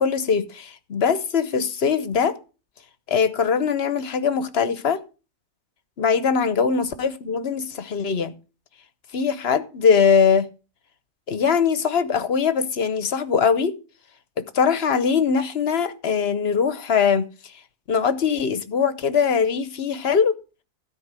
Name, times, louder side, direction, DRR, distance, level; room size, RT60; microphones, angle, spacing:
voice 1, 0.0-2.4 3.1-5.0 6.0-8.3 9.1-10.5 11.3-13.8 14.5-17.2 17.9-20.3, left 6 dB, 50° left, 1.1 m, -21 dB
13.0 x 4.4 x 7.4 m
omnidirectional pair, 1.4 m